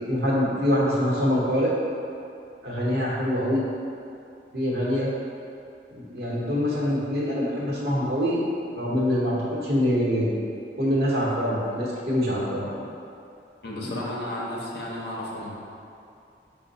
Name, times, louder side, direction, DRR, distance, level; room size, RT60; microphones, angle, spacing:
voice 1, 0.1-1.7 2.6-3.6 4.5-5.1 6.0-8.4 8.7-10.5 10.8-12.7 13.8-14.0, equal, 65° right, -6 dB, 0.9 m, -24 dB
voice 2, 13.6-15.5, left 1 dB, 60° left, -4 dB, 0.7 m, -33 dB
5.2 x 2.1 x 3.9 m, 2.6 s
head